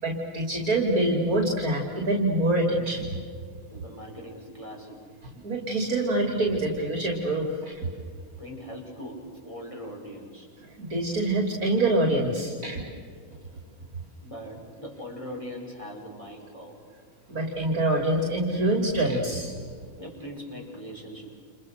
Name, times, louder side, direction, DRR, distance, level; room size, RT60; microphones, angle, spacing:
voice 1, 0.0-3.1 5.4-7.7 10.8-12.9 17.3-19.5, right 1 dB, 40° right, 2 dB, 3.4 m, -25 dB
voice 2, 3.7-5.0 8.4-10.5 14.2-16.8 20.0-21.4, equal, 15° left, 0 dB, 6.1 m, -40 dB
29.5 x 29.0 x 6.7 m, 2.1 s
omnidirectional pair, 2.3 m